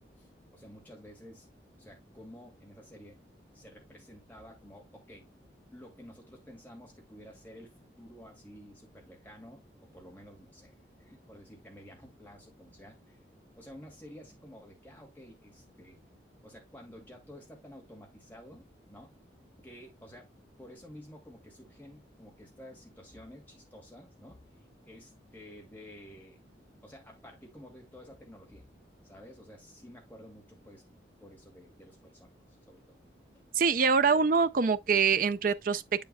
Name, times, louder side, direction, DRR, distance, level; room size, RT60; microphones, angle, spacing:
voice 1, 0.0-1.5 1.8-3.2 3.5-5.3 5.7-9.7 9.9-13.2 13.6-16.0 16.4-19.1 19.6-20.3 20.6-24.4 24.8-26.4 26.8-28.7 29.0-30.8 31.2-32.3 32.7-32.9 33.3-33.4, equal, 10° left, 2.4 m, -51 dB
voice 2, 33.6-35.8, right 5 dB, 50° right, 0.5 m, -24 dB
7.6 x 7.1 x 2.2 m
head